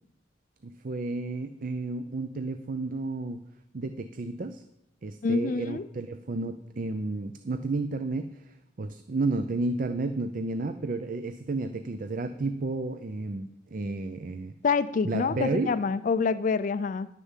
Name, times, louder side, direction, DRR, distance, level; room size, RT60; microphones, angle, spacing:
voice 1, 0.6-3.4 3.7-4.6 5.0-14.5 15.0-15.8, right 3 dB, 50° right, 11 dB, 0.5 m, -32 dB
voice 2, 5.2-5.8 14.6-17.1, left 5 dB, 45° left, 15 dB, 0.4 m, -26 dB
10.5 x 6.8 x 7.3 m, 0.82 s
head